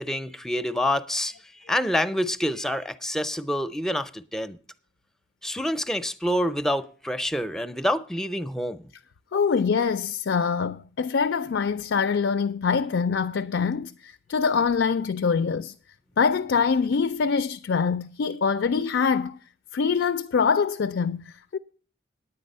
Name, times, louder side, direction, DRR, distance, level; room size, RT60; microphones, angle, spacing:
voice 1, 0.0-4.6 5.4-8.8, left 1 dB, 5° left, 0.5 m, -27 dB
voice 2, 9.3-15.7 16.2-19.4 19.7-21.6, left 5 dB, 75° left, 0.4 m, -24 dB
9.6 x 9.4 x 5.4 m
head